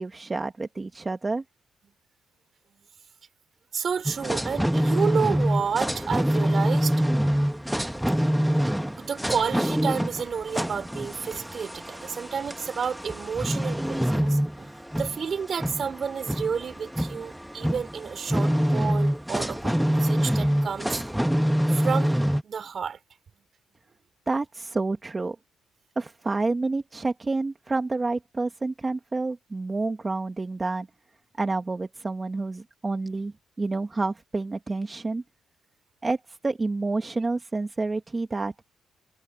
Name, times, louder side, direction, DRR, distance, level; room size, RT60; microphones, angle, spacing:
voice 1, 0.0-1.4 24.3-25.4 26.0-30.9 31.4-35.2 36.0-38.5, right 3 dB, 25° right, 1.7 m, -29 dB
voice 2, 3.7-7.4 8.0-8.3 8.6-14.7 15.0-21.0 21.7-22.2 22.4-23.0, right 6 dB, 50° right, 5.5 m, -31 dB
sound 1, 4.1-22.4, equal, 5° right, 1.2 m, -25 dB
cardioid pair, 90°, 0 cm